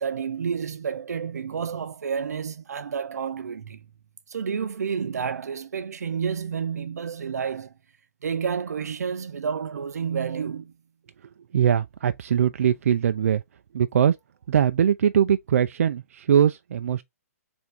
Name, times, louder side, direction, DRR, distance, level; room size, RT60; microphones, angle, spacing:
voice 1, 0.0-3.9 4.3-7.7 8.2-10.7, right 6 dB, 80° right, 0.7 m, -30 dB
voice 2, 11.5-13.4 13.7-14.2 14.5-17.0, right 9 dB, 60° right, 0.3 m, -21 dB
3.5 x 2.6 x 4.5 m
hypercardioid pair, 165°, 9 cm